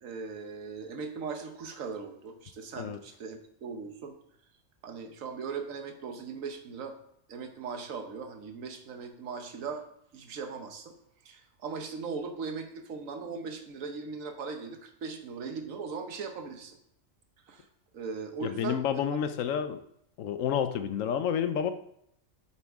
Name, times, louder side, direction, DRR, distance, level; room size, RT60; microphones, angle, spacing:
voice 1, 0.0-4.1 4.8-7.0 7.3-9.8 10.1-11.0 11.2-16.8 17.5-17.6 17.9-19.2, right 5 dB, 80° right, 6 dB, 1.3 m, -39 dB
voice 2, 18.4-19.8 20.2-21.7, left 8 dB, 80° left, 10 dB, 1.0 m, -29 dB
8.7 x 7.1 x 3.6 m, 0.72 s
omnidirectional pair, 1.4 m